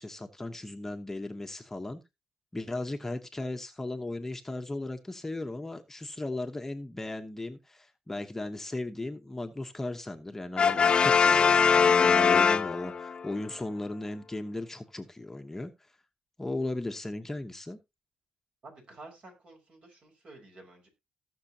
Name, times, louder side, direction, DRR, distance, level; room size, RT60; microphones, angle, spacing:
voice 1, 0.0-2.0 2.5-15.7 16.4-17.8, left 2 dB, 15° left, 5 dB, 1.0 m, -36 dB
Brass instrument, 10.6-13.2, left 6 dB, 40° left, 0.5 m, -22 dB
voice 2, 18.6-20.9, right 2 dB, 50° right, 2 dB, 5.5 m, -51 dB
18.5 x 6.3 x 2.8 m, 0.23 s
cardioid pair, 95°, 2 cm